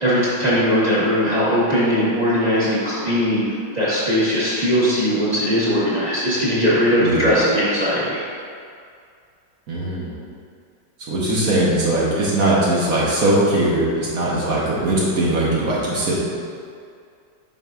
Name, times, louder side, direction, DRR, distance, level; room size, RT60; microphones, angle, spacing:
voice 1, 0.0-8.2, equal, 20° right, -10 dB, 1.6 m, -19 dB
voice 2, 9.7-10.1 11.1-16.1, right 1 dB, 50° right, -6 dB, 1.4 m, -20 dB
7.9 x 5.5 x 2.5 m, 2.3 s
omnidirectional pair, 2.1 m